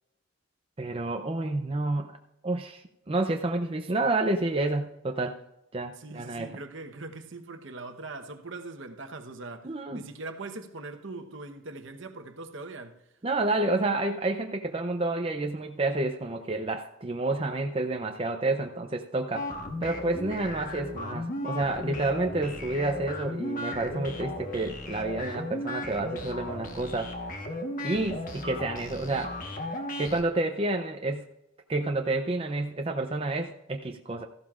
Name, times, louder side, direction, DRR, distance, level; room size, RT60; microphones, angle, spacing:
voice 1, 0.8-2.1 2.4-5.4 5.7-6.5 9.6-10.0 13.2-19.5 19.8-27.1 27.8-29.4 30.0-31.3 31.7-34.2, right 2 dB, 25° right, 0.5 m, -29 dB
voice 2, 6.0-13.0, right 3 dB, 65° right, 1.0 m, -41 dB
sound 1, 19.3-30.2, left 1 dB, 40° left, 1.3 m, -36 dB
14.5 x 12.0 x 2.5 m
head